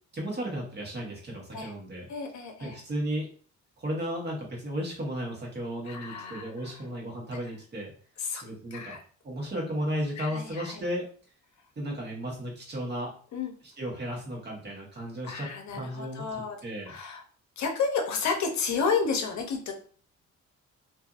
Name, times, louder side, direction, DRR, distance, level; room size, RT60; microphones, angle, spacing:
voice 1, 0.1-2.1 2.6-3.3 3.8-7.9 8.4-9.0 9.2-11.0 11.8-13.1 13.8-16.2 16.6-16.9, equal, 35° right, -2 dB, 1.3 m, -34 dB
voice 2, 2.1-2.8 5.9-6.8 8.2-8.4 8.7-9.0 10.2-10.8 13.3-13.5 15.2-16.6 16.9-17.2 17.6-19.7, left 5 dB, 65° left, 4 dB, 0.7 m, -31 dB
2.6 x 2.5 x 2.4 m, 0.43 s
cardioid pair, 90°, 30 cm